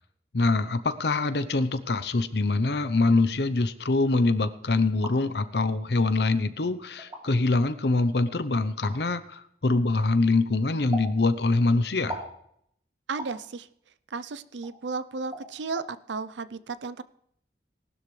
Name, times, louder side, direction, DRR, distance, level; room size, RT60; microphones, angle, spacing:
voice 1, 0.3-12.2, left 3 dB, 65° left, 12 dB, 0.8 m, -24 dB
sound 1, 4.8-5.2 6.1-6.2 7.0-7.2 8.8-9.0 10.9-11.1 12.1-12.3 13.2-13.4 14.6-14.7 15.3-15.5 15.8-15.9, right 1 dB, 20° right, 3.0 m, -37 dB
voice 2, 13.1-13.7 14.1-17.0, right 4 dB, 85° right, 14 dB, 0.6 m, -34 dB
19.0 x 12.0 x 3.3 m, 0.70 s
head